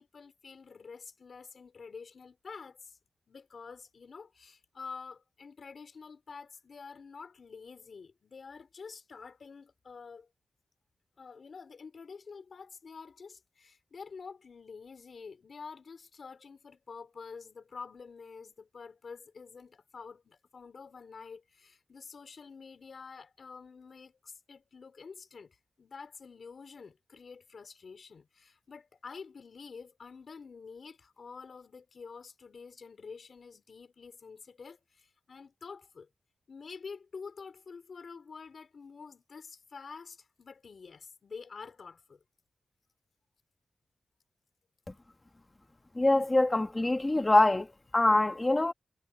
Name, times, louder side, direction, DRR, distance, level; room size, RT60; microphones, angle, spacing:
voice 1, 0.0-3.0 3.3-10.3 11.2-36.1 36.5-42.2, left 5 dB, 45° left, 4.5 m, -48 dB
voice 2, 46.0-47.7 47.9-48.7, left 2 dB, 15° left, 1.8 m, -24 dB
wide cardioid pair, 175°, 0 cm